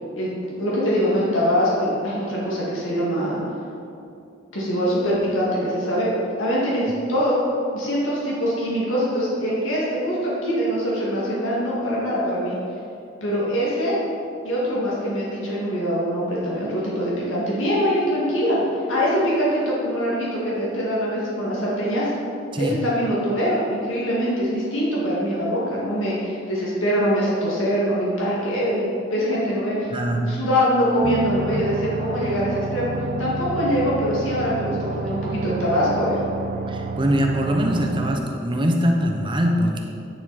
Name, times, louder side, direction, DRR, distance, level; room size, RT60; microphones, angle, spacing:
voice 1, 0.2-3.4 4.5-6.1 6.4-6.8 7.1-7.3 7.7-12.6 13.2-14.0 14.4-18.6 18.9-22.1 22.6-29.9 30.2-32.9 33.2-36.2, equal, 85° left, -7 dB, 2.1 m, -23 dB
voice 2, 29.9-30.4 31.5-31.6 36.7-39.8, equal, 25° right, 2 dB, 0.8 m, -22 dB
sound 1, 31.0-38.2, right 4 dB, 45° right, 0.3 m, -30 dB
10.0 x 7.0 x 4.1 m, 2.6 s
head